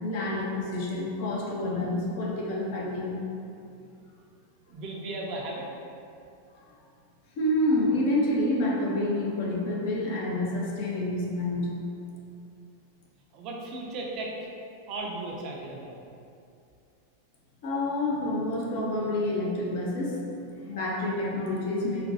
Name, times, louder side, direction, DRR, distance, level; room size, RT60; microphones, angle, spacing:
voice 1, 0.0-3.2 7.4-11.7 17.6-20.2 20.6-22.0, left 1 dB, 50° left, -3 dB, 0.6 m, -28 dB
voice 2, 4.7-5.7 13.3-14.5 14.9-16.0, right 2 dB, 40° right, -2 dB, 0.5 m, -36 dB
4.1 x 2.2 x 2.7 m, 2.5 s
figure-of-eight pair, 90°, 0 cm